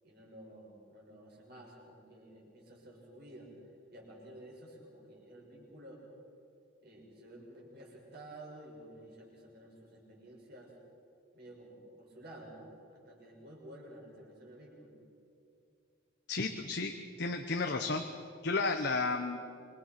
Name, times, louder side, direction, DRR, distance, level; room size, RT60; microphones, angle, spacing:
voice 1, 0.0-3.5 3.9-6.0 6.8-10.7 11.3-14.9, right 1 dB, 50° right, -2 dB, 6.5 m, -52 dB
voice 2, 16.3-18.0 18.4-19.4, left 3 dB, 55° left, 5 dB, 1.0 m, -33 dB
27.0 x 23.5 x 5.9 m, 2.7 s
head